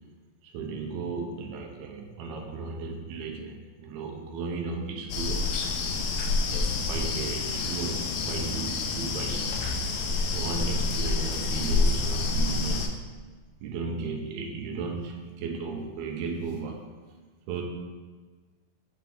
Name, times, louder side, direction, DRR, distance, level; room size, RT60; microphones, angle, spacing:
voice 1, 0.4-5.6 6.4-9.5 10.3-12.9 13.6-16.8 17.5-17.6, right 4 dB, 75° right, 1 dB, 1.8 m, -35 dB
sound 1, 5.1-12.9, left 3 dB, 80° left, 2.1 m, -28 dB
7.8 x 4.0 x 3.6 m, 1.4 s
omnidirectional pair, 3.9 m